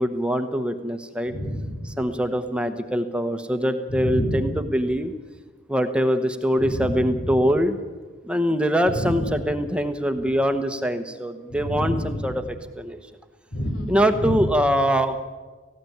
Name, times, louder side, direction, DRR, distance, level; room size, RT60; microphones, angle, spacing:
voice 1, 0.0-1.3 2.0-5.1 5.7-7.8 8.2-13.0 13.9-15.2, equal, 5° right, 7 dB, 1.0 m, -23 dB
voice 2, 1.3-2.0 3.9-4.6 6.6-7.4 8.8-9.3 11.5-12.3 13.5-14.5, equal, 85° left, 3 dB, 4.9 m, -28 dB
18.5 x 16.0 x 9.3 m, 1.4 s
head